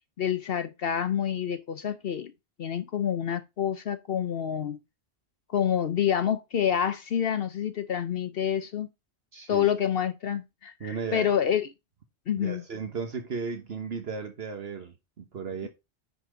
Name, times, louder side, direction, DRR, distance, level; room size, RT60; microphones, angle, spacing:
voice 1, 0.2-2.3 2.6-4.8 5.5-8.9 9.5-11.7 12.3-12.6 15.6-15.7, left 9 dB, 65° left, 0.9 m, -28 dB
voice 2, 9.3-9.7 10.8-11.3 12.4-15.7, right 5 dB, 65° right, 1.4 m, -35 dB
9.9 x 4.2 x 5.0 m
omnidirectional pair, 1.1 m